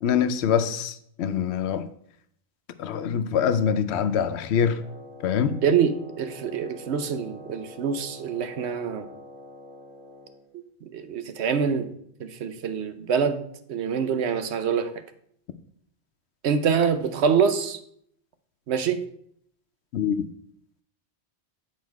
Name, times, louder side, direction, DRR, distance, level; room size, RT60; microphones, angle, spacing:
voice 1, 0.0-1.9 2.8-4.8 5.2-5.6 19.9-20.3, left 8 dB, 75° left, 0.8 m, -24 dB
Wind instrument woodwind instrument, 4.7-10.4, left 2 dB, 40° right, 1.8 m, -46 dB
voice 2, 5.6-9.1 10.8-11.9 12.2-13.4 13.7-14.9 16.4-17.8 18.7-19.0, right 6 dB, 75° right, 0.9 m, -25 dB
8.4 x 4.3 x 4.6 m
omnidirectional pair, 1.1 m